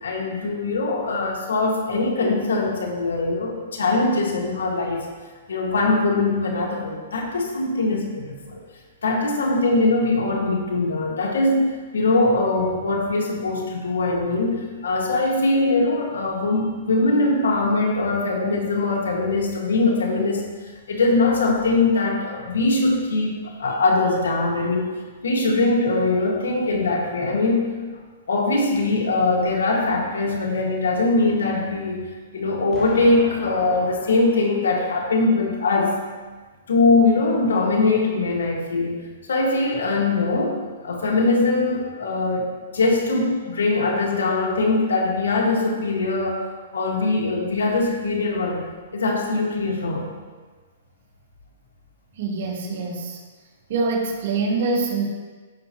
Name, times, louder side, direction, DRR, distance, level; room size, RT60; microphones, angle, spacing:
voice 1, 0.0-5.1 5.5-8.6 9.0-25.0 25.2-27.7 28.3-32.1 32.3-36.0 36.7-39.0 39.3-46.4 46.7-48.7 48.9-50.1, left 3 dB, 90° left, -1 dB, 1.9 m, -22 dB
Explosion, 32.7-35.7, left 1 dB, 20° left, 2.1 m, -40 dB
voice 2, 52.2-53.2 53.7-55.1, right 3 dB, 60° right, -2 dB, 2.0 m, -24 dB
15.5 x 5.5 x 3.1 m, 1.4 s
hypercardioid pair, 150°, 0 cm